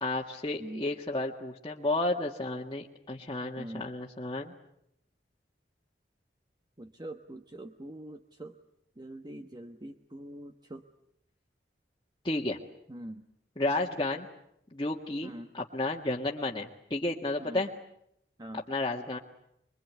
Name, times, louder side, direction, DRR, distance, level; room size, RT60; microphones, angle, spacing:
voice 1, 0.0-4.5 12.2-12.6 13.6-14.3 14.7-17.7 18.5-19.2, left 2 dB, 25° left, -3 dB, 1.7 m, -32 dB
voice 2, 6.8-8.6 9.0-10.8 12.9-13.3 15.2-15.5 17.4-17.6 18.4-18.6, right 1 dB, 25° right, 6 dB, 1.1 m, -43 dB
25.5 x 22.5 x 9.4 m, 0.76 s
head